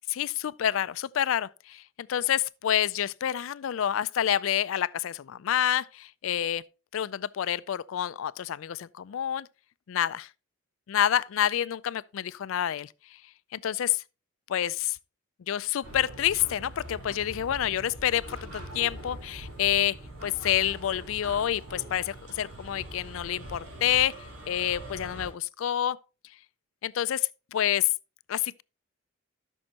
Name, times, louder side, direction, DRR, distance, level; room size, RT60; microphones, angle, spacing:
voice 1, 0.1-6.6 6.9-9.5 9.9-10.3 10.9-12.9 13.5-14.0 14.5-15.0 15.5-24.1 24.5-26.0 26.8-27.9 28.3-28.6, left 10 dB, 70° left, 0.3 m, -28 dB
sound 1, 15.8-25.3, right 1 dB, 85° right, 3.9 m, -43 dB
13.0 x 6.3 x 2.8 m
head